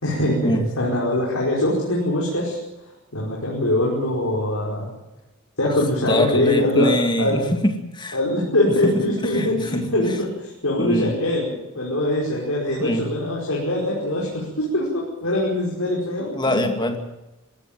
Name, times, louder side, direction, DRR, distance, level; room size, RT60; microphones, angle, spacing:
voice 1, 0.0-2.6 2.8-4.9 5.6-7.4 8.1-16.7, left 1 dB, 70° left, -4 dB, 5.3 m, -23 dB
voice 2, 6.1-8.2 8.8-8.9 9.2-9.8 10.8-11.1 12.8-13.0 16.3-17.0, left 1 dB, 20° left, 5 dB, 2.4 m, -23 dB
20.0 x 16.5 x 9.3 m, 0.99 s
head